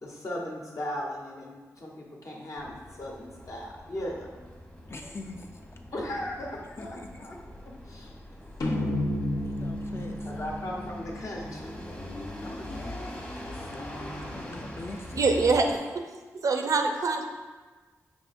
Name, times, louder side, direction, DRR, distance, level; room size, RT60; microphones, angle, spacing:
voice 1, 0.0-4.3 5.9-8.1 10.0-11.8 13.7-14.0, left 1 dB, 60° left, -2 dB, 1.0 m, -38 dB
sound 1, 2.6-15.8, left 1 dB, 25° left, 1.0 m, -42 dB
voice 2, 4.9-5.6 6.8-7.1 9.4-10.7 12.4-13.5 14.3-15.3, left 2 dB, 45° left, 3 dB, 0.5 m, -43 dB
sound 2, 8.6-12.1, left 1 dB, 80° left, 0.7 m, -32 dB
voice 3, 15.2-16.0 16.4-17.3, right 3 dB, 65° right, 4 dB, 0.5 m, -24 dB
4.9 x 3.5 x 2.6 m, 1.3 s
cardioid pair, 50°, 6 cm